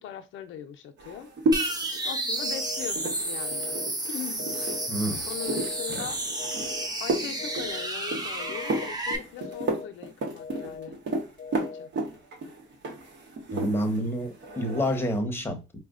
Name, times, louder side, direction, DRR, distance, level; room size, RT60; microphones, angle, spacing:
voice 1, 0.0-1.3 1.6-1.7 2.0-3.8 4.1-4.4 5.3-6.2 7.0-11.0 11.6-11.9, left 9 dB, 80° left, 0.5 m, -40 dB
sound 1, 1.0-14.1 14.3-15.0, right 2 dB, 60° right, 1.0 m, -33 dB
sound 2, 1.5-9.2, right 1 dB, 20° right, 0.8 m, -31 dB
sound 3, 2.4-2.9 3.4-3.9 4.4-4.9 5.4-5.9 6.4-6.9 7.4-7.9 8.4-8.9 9.4-9.9 10.4-10.9 11.4-11.9, left 5 dB, 40° left, 0.7 m, -41 dB
voice 2, 4.9-5.2 5.9-6.1 13.5-15.8, equal, 10° left, 0.9 m, -29 dB
4.7 x 2.2 x 2.4 m
cardioid pair, 90°, 20 cm